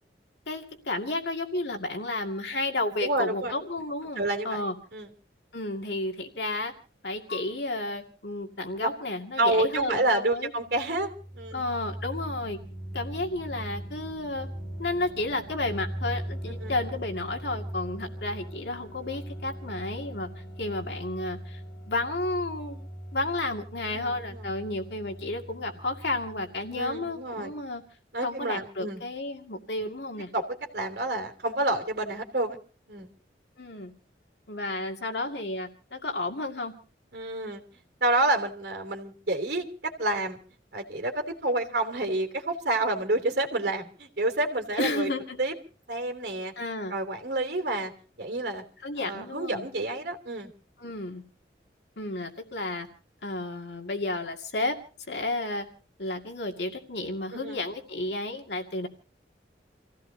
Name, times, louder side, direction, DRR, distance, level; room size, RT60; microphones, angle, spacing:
voice 1, 0.5-4.7 5.5-6.7 7.0-10.5 11.5-12.6 12.9-14.5 14.8-20.3 20.6-21.6 21.9-27.8 28.2-30.3 33.6-33.9 34.5-36.7 44.8-45.4 46.6-47.0 48.8-49.7 50.8-51.2 52.0-52.9 53.2-54.8 55.1-55.7 56.0-58.9, left 2 dB, 75° left, 3 dB, 2.2 m, -32 dB
voice 2, 3.0-3.5 4.2-4.6 4.9-5.1 8.8-8.9 9.4-11.6 16.6-16.7 23.9-24.5 26.7-27.5 28.1-29.0 30.3-32.6 32.9-33.1 37.1-37.6 38.0-40.4 40.7-45.1 45.4-45.5 45.9-46.5 46.9-47.9 48.2-48.6 49.0-50.5 57.4-57.6, right 2 dB, 65° right, 3 dB, 3.1 m, -29 dB
sound 1, 10.6-27.3, right 1 dB, 15° left, 6.5 m, -40 dB
29.0 x 16.0 x 2.8 m, 0.37 s
head